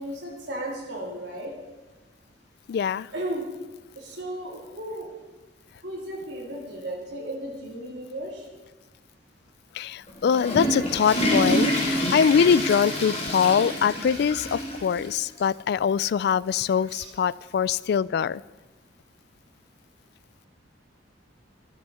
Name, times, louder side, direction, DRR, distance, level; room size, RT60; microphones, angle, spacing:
voice 1, 0.0-1.5 3.1-3.4 3.9-5.2 5.8-8.5 16.9-17.1, right 1 dB, 65° right, -2 dB, 3.3 m, -35 dB
voice 2, 2.7-3.1 9.7-18.4, left 7 dB, 60° left, 21 dB, 0.3 m, -23 dB
Water / Toilet flush, 10.1-15.1 15.4-15.5 16.2-16.3 17.6-17.7, equal, 35° left, 3.4 m, -27 dB
12.5 x 11.5 x 5.6 m, 1.2 s
head